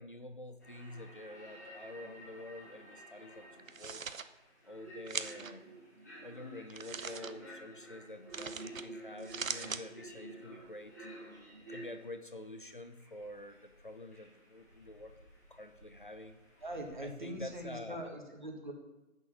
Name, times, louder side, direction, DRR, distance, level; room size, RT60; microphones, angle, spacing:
voice 1, 0.0-4.0 4.6-5.7 6.2-11.0 11.7-15.2 15.5-16.4 17.0-18.1, left 1 dB, 40° left, 8 dB, 0.6 m, -48 dB
sound 1, 0.6-17.7, right 1 dB, 15° left, 1.1 m, -52 dB
sound 2, 3.6-4.2 5.1-5.5 6.7-7.3 8.3-8.8 9.2-9.8, right 5 dB, 70° right, 0.7 m, -40 dB
voice 2, 16.6-18.7, right 1 dB, 35° right, 3 dB, 1.5 m, -42 dB
8.4 x 6.2 x 6.0 m, 0.98 s
figure-of-eight pair, 160°, 41 cm